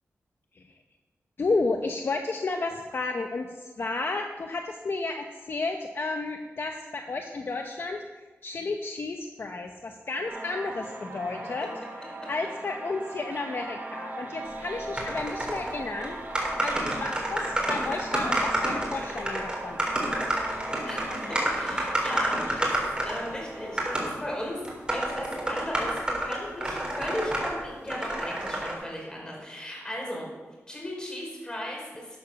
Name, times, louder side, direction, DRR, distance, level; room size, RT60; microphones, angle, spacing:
voice 1, 1.4-11.7 12.3-16.2 16.6-19.9, left 3 dB, 50° left, 4 dB, 0.9 m, -32 dB
sound 1, 10.2-23.8, right 2 dB, 40° right, 1.9 m, -40 dB
sound 2, 15.0-15.7 16.0-16.1 16.4-23.3 23.8-24.1 24.6-27.5 27.9-28.7, right 1 dB, 20° right, 3.8 m, -29 dB
voice 2, 20.8-24.6 24.9-30.3 30.7-32.2, left 1 dB, 15° left, -3 dB, 5.4 m, -36 dB
12.0 x 9.3 x 7.0 m, 1.3 s
wide cardioid pair, 110°, 5 cm